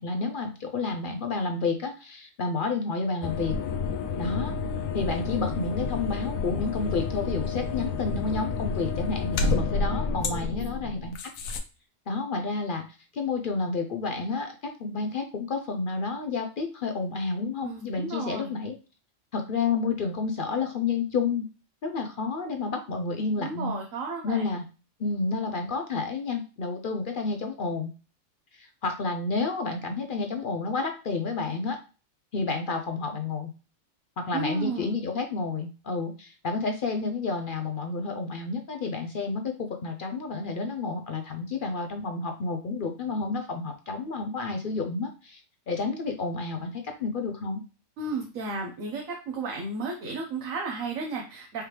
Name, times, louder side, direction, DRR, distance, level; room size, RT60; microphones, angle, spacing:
voice 1, 0.0-3.5 4.2-4.5 4.9-11.2 12.1-12.8 13.1-18.7 19.3-21.5 21.8-23.7 24.2-24.6 25.0-27.9 28.5-31.8 32.3-33.5 34.2-45.4 45.7-47.6, left 4 dB, 55° left, 4 dB, 0.6 m, -30 dB
sound 1, 3.2-11.6, left 4 dB, 85° left, 1.1 m, -30 dB
voice 2, 17.6-18.5 23.4-24.6 34.3-35.0 48.0-51.7, right 3 dB, 75° right, 0 dB, 1.2 m, -33 dB
4.8 x 2.9 x 3.3 m, 0.34 s
omnidirectional pair, 1.4 m